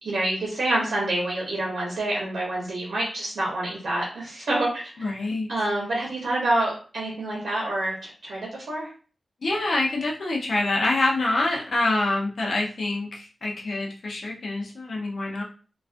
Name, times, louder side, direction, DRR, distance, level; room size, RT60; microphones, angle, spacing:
voice 1, 0.0-5.1 5.5-8.9, right 1 dB, 90° right, -3 dB, 0.8 m, -27 dB
voice 2, 5.0-5.5 9.4-15.4, left 2 dB, 65° left, -2 dB, 0.6 m, -26 dB
2.3 x 2.3 x 2.5 m, 0.38 s
wide cardioid pair, 140°, 0 cm